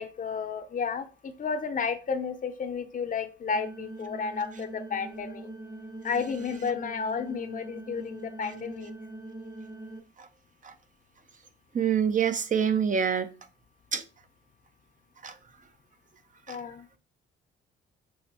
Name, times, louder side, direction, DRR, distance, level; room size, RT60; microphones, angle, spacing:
voice 1, 0.0-5.5 6.0-8.9 16.5-16.9, left 5 dB, 45° left, 0.7 m, -32 dB
sound 1, 3.5-10.0, right 2 dB, 20° right, 0.9 m, -42 dB
voice 2, 11.7-13.3 13.9-14.0 15.2-15.3 16.5-16.6, right 7 dB, 40° right, 0.6 m, -26 dB
6.3 x 2.9 x 2.9 m
cardioid pair, 90°, 20 cm